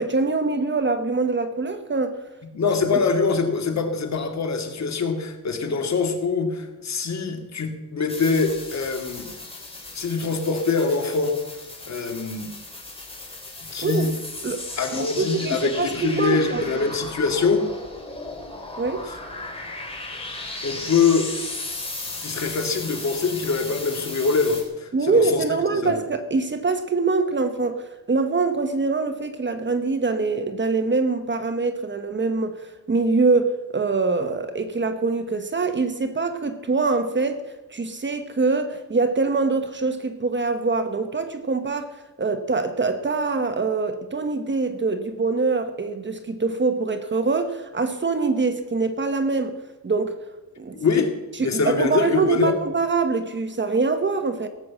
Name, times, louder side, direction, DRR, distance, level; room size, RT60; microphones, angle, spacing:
voice 1, 0.0-2.2 13.8-14.1 14.4-14.6 14.9-16.6 18.8-19.1 24.9-32.5 32.9-37.4 37.7-41.9 42.2-49.5 49.8-50.1 50.6-50.7 51.4-54.5, right 4 dB, 30° right, 8 dB, 1.1 m, -24 dB
voice 2, 2.5-9.3 9.9-11.4 11.9-12.5 13.7-14.1 14.8-17.6 19.0-19.2 20.6-21.3 22.2-25.4 25.7-25.9 50.7-51.1 51.4-52.5, left 4 dB, 45° left, 5 dB, 2.3 m, -24 dB
sound 1, 8.1-24.6, left 2 dB, 15° left, 3.6 m, -36 dB
18.0 x 8.0 x 7.4 m, 1.1 s
cardioid pair, 125°, 39 cm